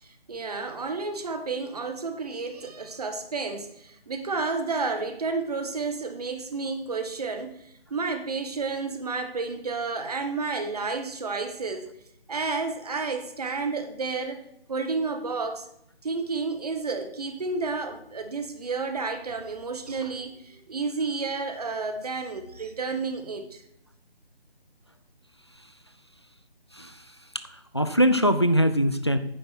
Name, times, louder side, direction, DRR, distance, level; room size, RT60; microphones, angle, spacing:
voice 1, 0.0-11.9 12.3-15.7 16.0-23.6, right 4 dB, 40° right, 1.2 m, -31 dB
voice 2, 27.7-29.2, equal, 25° left, 0.4 m, -22 dB
9.7 x 7.4 x 4.4 m
figure-of-eight pair, 160°, 31 cm